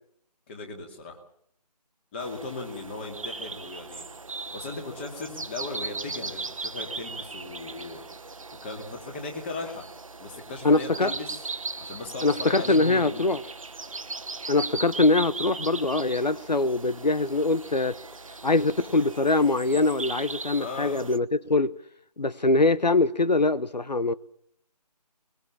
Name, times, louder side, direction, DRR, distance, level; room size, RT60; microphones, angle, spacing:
voice 1, 0.5-1.2 2.1-4.1 4.5-8.0 8.6-9.9 10.2-11.4 11.8-13.3 20.6-21.1, left 3 dB, 15° left, 2.5 m, -37 dB
sound 1, 2.2-21.2, right 3 dB, 50° right, 1.2 m, -38 dB
voice 2, 10.6-11.1 12.2-13.4 14.5-17.9 18.4-21.7 22.2-24.1, left 2 dB, 80° left, 1.0 m, -23 dB
21.5 x 21.5 x 7.3 m
figure-of-eight pair, 160°, 21 cm